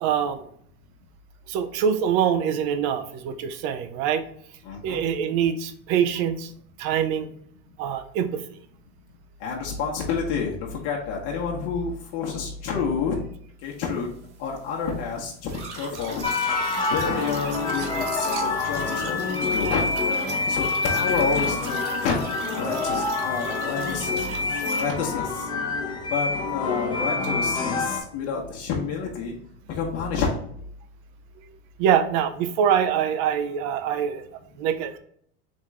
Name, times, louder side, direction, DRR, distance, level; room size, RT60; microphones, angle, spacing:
voice 1, 0.0-0.4 1.5-4.2 4.8-6.5 6.8-7.3 7.8-8.4 31.8-34.3 34.6-35.0, right 8 dB, 55° right, 9 dB, 0.7 m, -24 dB
voice 2, 4.6-5.0 9.4-13.2 13.6-14.1 14.4-16.3 16.9-19.8 20.5-22.2 22.6-24.4 24.8-25.2 26.1-29.3 29.8-30.4, left 5 dB, 50° left, -3 dB, 1.1 m, -29 dB
sound 1, 15.5-24.9, right 3 dB, 90° right, 1.1 m, -38 dB
sound 2, 16.2-28.0, left 3 dB, 15° left, 0.9 m, -27 dB
3.6 x 3.6 x 3.2 m, 0.64 s
hypercardioid pair, 105°, 34 cm